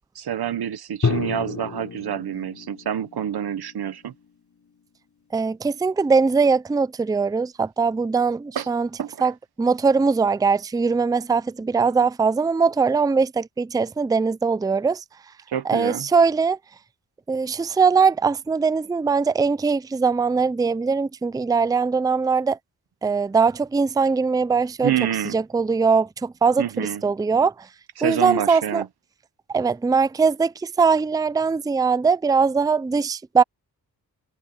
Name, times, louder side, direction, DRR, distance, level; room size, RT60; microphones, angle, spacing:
voice 1, 0.1-4.1 8.5-8.7 9.0-9.3 15.5-16.1 24.8-25.4 26.6-27.0 28.0-28.9, right 9 dB, 90° right, 1.3 m, -27 dB
Drum, 1.0-4.8, left 4 dB, 50° left, 3.4 m, -31 dB
voice 2, 5.3-8.9 9.2-9.3 9.6-15.0 15.7-16.6 17.3-22.6 23.0-24.9 25.3-27.7 28.0-28.8 29.5-33.4, right 5 dB, 10° right, 0.4 m, -21 dB
cardioid pair, 85°, 37 cm